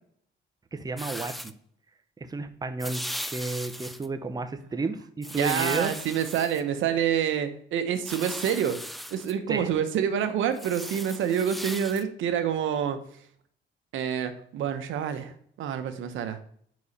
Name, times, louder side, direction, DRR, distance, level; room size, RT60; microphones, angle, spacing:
voice 1, 0.7-1.5 2.2-3.0 3.3-5.9 9.5-9.7, right 3 dB, 20° right, 8 dB, 0.7 m, -31 dB
sound 1, 1.0-1.5 2.8-4.1 5.2-6.6 8.0-9.3 10.5-12.0, equal, ahead, 0.3 m, -37 dB
voice 2, 5.4-8.8 9.1-13.0 13.9-16.4, right 8 dB, 80° right, 9 dB, 0.8 m, -27 dB
4.9 x 4.7 x 4.0 m, 0.64 s
cardioid pair, 90°, 20 cm